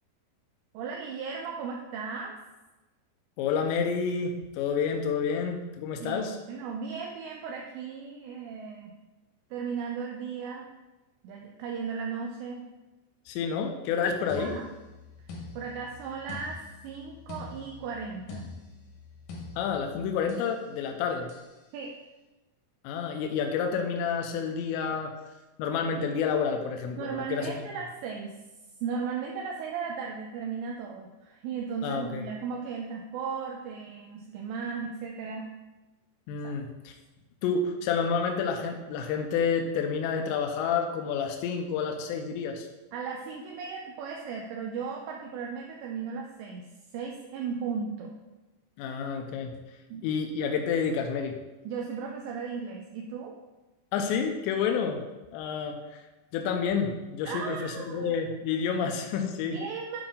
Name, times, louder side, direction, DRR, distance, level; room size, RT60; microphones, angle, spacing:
voice 1, 0.7-2.4 6.0-8.9 9.5-10.7 11.2-12.7 14.4-14.7 15.5-18.5 21.7-21.9 27.0-28.3 28.8-35.5 36.4-36.5 42.9-46.7 46.9-48.1 49.9-50.0 51.6-53.3 57.2-58.2 59.5-60.0, right 5 dB, 80° right, 0 dB, 2.8 m, -36 dB
voice 2, 3.4-6.4 13.3-14.5 19.6-21.3 22.8-25.1 25.6-27.6 31.8-32.3 36.3-36.9 37.4-42.7 48.8-49.6 50.0-51.4 53.9-55.0 55.3-56.0 56.3-59.6, left 6 dB, 85° left, 3 dB, 2.8 m, -29 dB
sound 1, 14.3-20.6 21.3-21.6, left 3 dB, 65° left, 2.1 m, -45 dB
8.7 x 4.9 x 3.7 m, 1.1 s
omnidirectional pair, 5.2 m